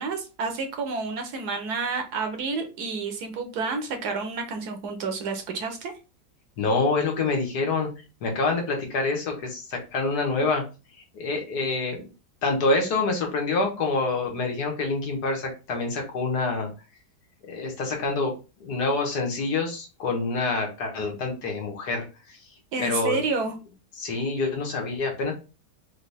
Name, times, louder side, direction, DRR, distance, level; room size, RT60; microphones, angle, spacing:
voice 1, 0.0-5.9 22.7-23.5, right 4 dB, 70° right, 5 dB, 1.4 m, -30 dB
voice 2, 6.6-7.9 8.2-10.6 11.1-12.0 12.4-16.7 17.4-18.3 18.6-22.4 22.8-23.2 24.0-25.3, left 3 dB, 70° left, 1 dB, 1.7 m, -26 dB
4.3 x 2.8 x 3.3 m, 0.31 s
omnidirectional pair, 1.8 m